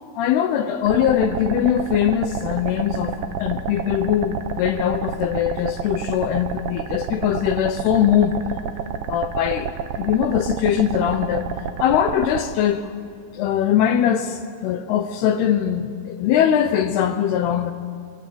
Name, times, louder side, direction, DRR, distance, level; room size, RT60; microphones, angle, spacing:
voice 1, 0.2-8.4 9.1-11.5 11.8-12.8 13.3-17.7, left 9 dB, 75° left, 2.9 m, -21 dB
sound 1, 0.9-12.4, right 8 dB, 65° right, 2.6 m, -30 dB
25.5 x 23.5 x 7.7 m
omnidirectional pair, 4.8 m